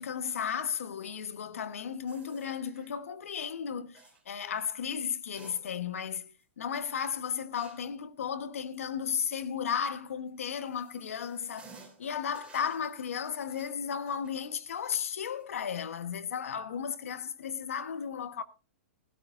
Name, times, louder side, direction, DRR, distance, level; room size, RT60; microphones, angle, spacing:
voice 1, 0.0-6.3 6.6-18.4, left 7 dB, 85° left, 1.2 m, -34 dB
sound 1, 2.1-3.0 3.9-4.2 5.1-6.0 6.4-6.5 7.6-8.0 10.1-16.2 16.5-16.6 17.5-17.8, right 5 dB, 15° right, 3.6 m, -57 dB
18.0 x 12.5 x 2.6 m
hypercardioid pair, 135°, 7 cm